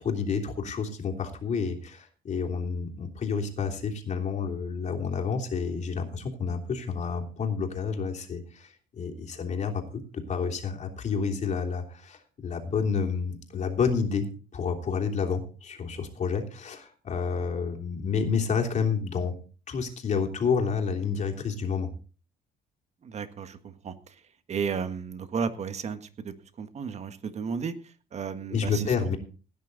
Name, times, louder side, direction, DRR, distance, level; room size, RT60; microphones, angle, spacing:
voice 1, 0.0-14.3 14.5-19.3 19.7-21.9 28.5-29.2, left 5 dB, 45° left, 2 dB, 3.2 m, -29 dB
voice 2, 23.0-24.1 24.5-27.7 28.1-28.8, right 6 dB, 40° right, 10 dB, 1.6 m, -33 dB
17.0 x 9.8 x 4.0 m, 0.38 s
cardioid pair, 110°, 17 cm